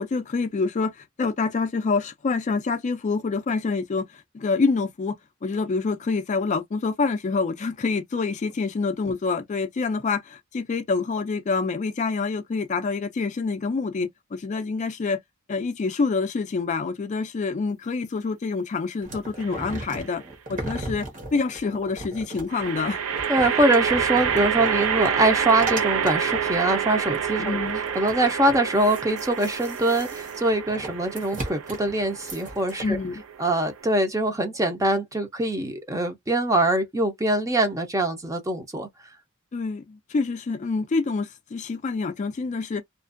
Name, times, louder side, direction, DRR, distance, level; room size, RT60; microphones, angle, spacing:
voice 1, 0.0-15.2 15.5-20.2 20.5-23.0 27.4-27.8 32.8-33.2 39.5-42.8, left 4 dB, 35° left, 0.3 m, -27 dB
sound 1, 19.0-26.6 27.1-27.2 27.4-32.9, right 2 dB, 40° right, 1.1 m, -37 dB
sound 2, 19.4-20.0 22.5-33.9, right 7 dB, 85° right, 0.5 m, -28 dB
voice 2, 23.3-33.0 33.4-38.9, right 1 dB, 15° right, 0.6 m, -23 dB
2.5 x 2.2 x 2.5 m
head